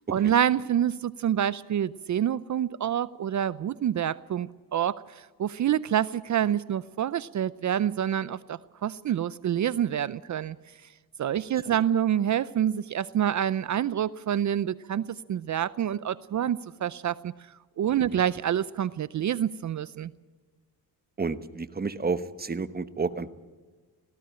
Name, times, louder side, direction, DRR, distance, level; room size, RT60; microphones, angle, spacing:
voice 1, 0.1-10.6 11.2-17.3 17.8-20.1, right 10 dB, 45° right, 18 dB, 0.6 m, -27 dB
voice 2, 21.2-23.3, right 4 dB, 25° right, 13 dB, 1.1 m, -31 dB
18.5 x 15.5 x 8.9 m, 1.3 s
cardioid pair, 90°, 40 cm